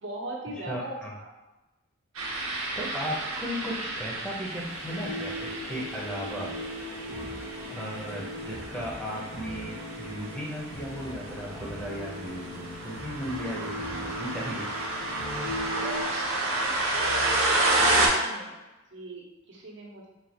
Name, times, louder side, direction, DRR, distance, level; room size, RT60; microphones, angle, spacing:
voice 1, 0.0-0.9 7.1-7.4 15.7-16.4 16.8-18.6 18.9-20.1, right 1 dB, 60° right, -2 dB, 0.9 m, -38 dB
voice 2, 0.6-1.1 2.8-6.6 7.7-14.7, equal, 5° left, -4 dB, 0.6 m, -36 dB
sound 1, 2.1-18.1, right 2 dB, 85° right, 0.9 m, -31 dB
sound 2, 4.5-16.0, left 1 dB, 60° left, 0.6 m, -40 dB
sound 3, 7.1-16.1, left 1 dB, 75° left, 1.2 m, -47 dB
4.0 x 2.3 x 4.4 m, 1.1 s
head